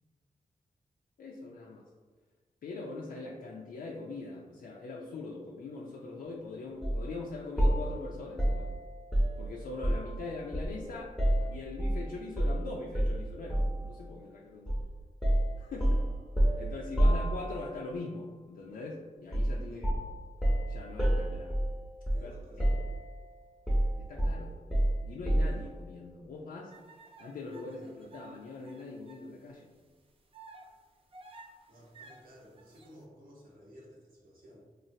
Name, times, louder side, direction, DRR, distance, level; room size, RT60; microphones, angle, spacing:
voice 1, 1.2-1.8 2.6-8.7 9.4-14.8 15.6-16.0 16.6-19.9 20.7-21.6 22.2-22.3 22.6-22.7 24.0-24.8 25.0-26.7 27.2-29.7, left 3 dB, 80° left, -4 dB, 0.4 m, -42 dB
sound 1, 6.8-7.0 7.6-10.2 10.5-12.0 12.4-12.6 12.9-13.8 14.7-14.9 15.2-17.8 19.3-19.6 19.8-22.3 22.6-23.2 23.7-25.6, right 1 dB, ahead, 0.8 m, -29 dB
voice 2, 22.1-22.7 31.7-34.7, equal, 80° right, -4 dB, 0.9 m, -55 dB
sound 2, 26.7-29.2 29.7-29.8 30.3-33.0, right 3 dB, 40° right, 0.4 m, -54 dB
3.1 x 2.3 x 2.7 m, 1.4 s
cardioid pair, 65°, 15 cm